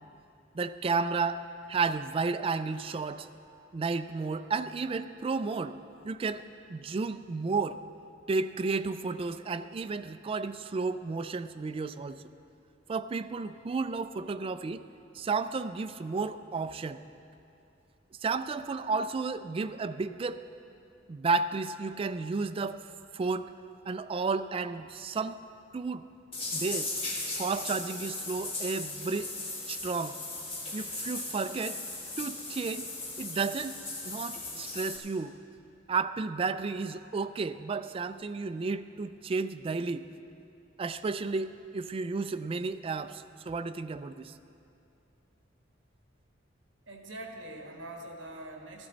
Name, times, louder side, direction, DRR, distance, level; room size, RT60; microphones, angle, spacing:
voice 1, 0.5-1.4 1.7-3.3 3.7-5.8 6.0-6.4 6.7-7.8 8.3-12.2 12.9-14.8 15.1-17.0 18.2-20.4 21.1-22.8 23.1-23.5 23.9-25.4 25.7-26.0 26.5-26.9 27.3-29.3 29.7-30.2 30.7-31.8 32.2-32.8 33.2-33.8 34.0-35.4 35.9-40.1 40.8-44.3, right 4 dB, 30° right, 11 dB, 0.3 m, -32 dB
sound 1, 26.3-35.0, left 2 dB, 30° left, 1.8 m, -37 dB
voice 2, 46.9-48.9, right 1 dB, 65° right, 2 dB, 1.4 m, -43 dB
13.5 x 13.0 x 4.0 m, 2.7 s
head